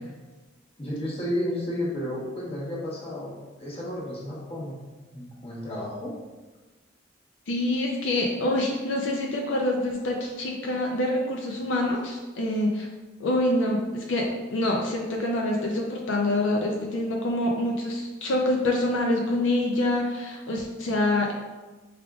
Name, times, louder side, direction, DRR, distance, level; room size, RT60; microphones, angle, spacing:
voice 1, 0.8-4.8 5.1-6.1, left 1 dB, 30° left, -6 dB, 1.1 m, -32 dB
voice 2, 7.5-12.9 13.2-21.3, left 1 dB, 80° left, 0 dB, 0.5 m, -26 dB
4.8 x 3.5 x 2.3 m, 1.2 s
head